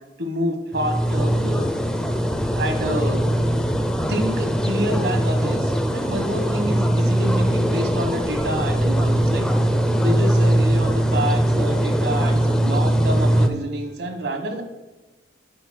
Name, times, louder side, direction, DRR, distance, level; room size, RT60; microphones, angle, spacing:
voice 1, 0.2-1.7 2.5-3.2 4.1-9.7 9.9-14.6, equal, 70° right, 5 dB, 1.2 m, -28 dB
sound 1, 0.7-13.5, right 1 dB, 5° left, 0.5 m, -21 dB
8.2 x 4.0 x 6.3 m, 1.1 s
head